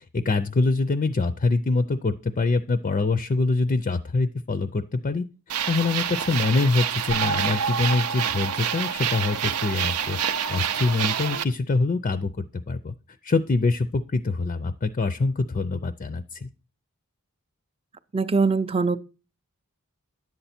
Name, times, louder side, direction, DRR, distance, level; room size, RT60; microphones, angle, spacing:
voice 1, 0.0-5.3 5.7-10.2 10.5-12.9 13.2-16.5, left 3 dB, 35° left, 0.5 m, -24 dB
sound 1, 5.5-11.4, right 8 dB, 90° right, 0.6 m, -27 dB
voice 2, 18.1-19.0, right 4 dB, 25° right, 0.5 m, -22 dB
11.0 x 8.0 x 4.3 m
head